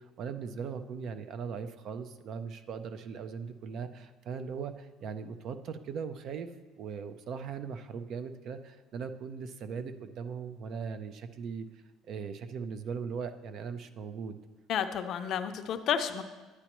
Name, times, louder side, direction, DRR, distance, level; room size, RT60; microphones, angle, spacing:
voice 1, 0.0-6.5 6.8-11.7 12.1-14.4, right 6 dB, 50° right, 10 dB, 0.5 m, -39 dB
voice 2, 14.7-16.2, left 8 dB, 50° left, 8 dB, 0.5 m, -31 dB
9.9 x 9.6 x 3.0 m, 1.2 s
cardioid pair, 135°, 0 cm